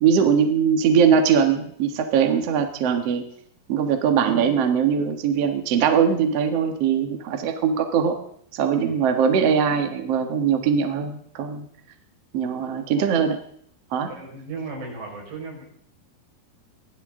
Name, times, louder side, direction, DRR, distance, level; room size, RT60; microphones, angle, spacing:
voice 1, 0.0-3.2 3.7-8.2 8.5-11.7 12.3-13.4 13.9-14.1, right 7 dB, 55° right, 6 dB, 1.8 m, -21 dB
voice 2, 14.1-15.6, right 3 dB, 80° right, -1 dB, 7.4 m, -36 dB
22.0 x 16.0 x 3.8 m, 0.65 s
omnidirectional pair, 4.9 m